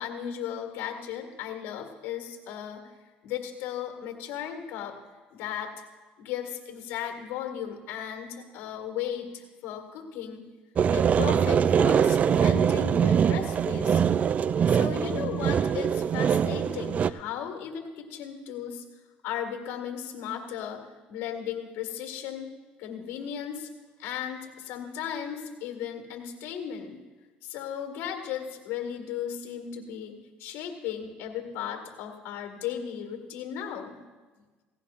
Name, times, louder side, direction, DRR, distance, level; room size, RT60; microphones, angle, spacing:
voice 1, 0.0-2.9 3.2-5.0 5.3-5.8 6.2-10.5 10.9-14.0 14.7-18.8 19.2-22.5 22.8-23.7 24.0-27.0 27.4-34.0, left 9 dB, 70° left, 4 dB, 1.8 m, -36 dB
sound 1, 10.8-17.1, right 7 dB, 40° right, 0.4 m, -23 dB
16.5 x 16.5 x 2.5 m, 1.3 s
supercardioid pair, 90°, 4 cm